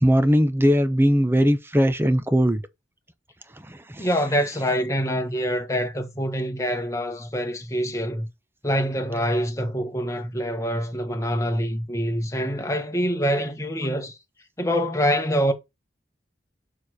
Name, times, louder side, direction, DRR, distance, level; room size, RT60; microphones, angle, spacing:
voice 1, 0.0-2.6 3.7-4.1, equal, 15° right, 0.8 m, -20 dB
voice 2, 4.0-8.3 8.6-14.1 14.6-15.5, equal, 15° left, 1.4 m, -25 dB
7.2 x 4.8 x 4.3 m
head